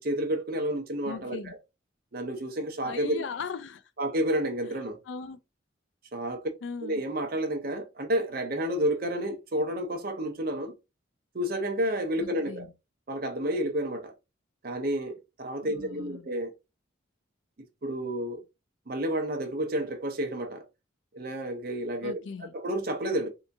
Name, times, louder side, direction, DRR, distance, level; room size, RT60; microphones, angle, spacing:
voice 1, 0.0-1.6 2.1-3.2 4.0-5.0 6.1-6.4 6.8-10.7 11.3-12.7 13.1-14.1 14.6-16.5 17.8-18.4 18.9-20.7 21.1-22.2 22.5-23.3, right 1 dB, 50° right, 0.7 m, -30 dB
voice 2, 1.0-1.6 2.8-3.8 5.1-5.4 6.6-7.0 12.2-12.7 15.6-16.3 22.0-22.5, left 5 dB, 70° left, 0.4 m, -38 dB
3.4 x 2.8 x 2.6 m
head